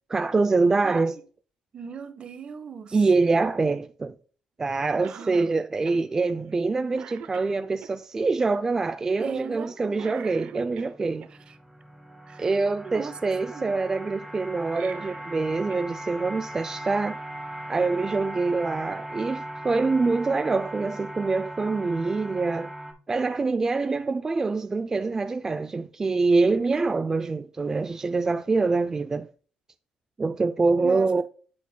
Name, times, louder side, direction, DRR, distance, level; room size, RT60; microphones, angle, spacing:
voice 1, 0.1-1.2 2.9-4.1 4.6-11.3 12.4-17.2 17.7-22.7 23.1-29.3 30.2-31.2, right 3 dB, 20° right, 0.3 m, -25 dB
voice 2, 0.8-1.2 1.7-3.0 5.0-5.5 9.2-10.1 11.5-11.6 12.3-12.5 12.8-13.8 26.7-26.8 30.8-31.1, right 6 dB, 40° right, 0.8 m, -38 dB
Cough, 5.0-5.5 5.9-6.0 6.5-6.7 6.9-7.9 9.9-11.3 14.6-15.9 16.2-16.3 17.4-17.5, right 9 dB, 70° right, 0.6 m, -44 dB
sound 1, 10.9-22.9, right 1 dB, ahead, 1.1 m, -39 dB
10.5 x 4.0 x 2.2 m
cardioid pair, 105°, 3 cm